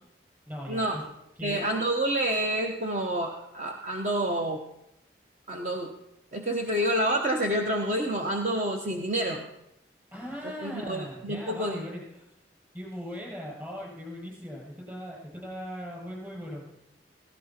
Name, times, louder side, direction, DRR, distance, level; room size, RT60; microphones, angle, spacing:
voice 1, 0.5-1.0 1.4-1.6 10.1-12.3 12.7-16.6, equal, 15° right, -2 dB, 6.9 m, -39 dB
voice 2, 1.4-4.6 5.5-5.9 6.3-9.4 10.6-11.8, right 1 dB, 40° right, 2 dB, 1.1 m, -28 dB
16.5 x 15.5 x 4.4 m, 0.85 s
head